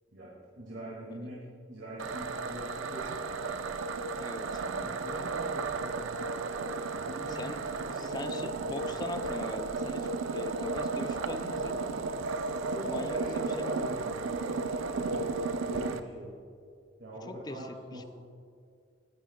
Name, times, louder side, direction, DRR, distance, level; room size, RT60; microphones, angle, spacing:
voice 1, 0.1-3.4 4.5-6.3 6.9-9.0 12.7-14.1 14.5-16.3 17.0-18.1, equal, 70° right, -5 dB, 1.9 m, -43 dB
sound 1, 2.0-16.0, right 3 dB, 85° right, 0.5 m, -34 dB
voice 2, 4.2-4.6 7.3-12.1 12.8-13.7 17.3-18.0, left 2 dB, 20° left, 8 dB, 0.4 m, -41 dB
18.0 x 10.0 x 2.2 m, 2.3 s
head